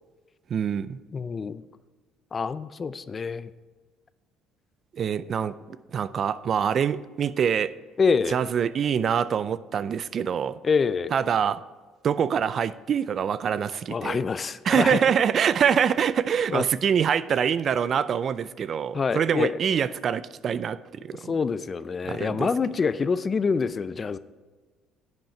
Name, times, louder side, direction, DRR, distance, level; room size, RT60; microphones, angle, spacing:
voice 1, 0.5-1.0 4.9-5.6 5.9-7.7 8.3-10.6 11.1-11.6 12.0-14.2 14.7-21.3 22.0-22.5, right 7 dB, 50° right, 16 dB, 0.4 m, -25 dB
voice 2, 1.1-1.6 2.3-3.5 8.0-8.4 10.6-11.1 13.9-15.0 16.5-16.6 18.9-19.5 21.3-24.2, left 5 dB, 35° left, 15 dB, 0.5 m, -26 dB
10.5 x 7.8 x 4.4 m, 1.3 s
supercardioid pair, 75°, 0 cm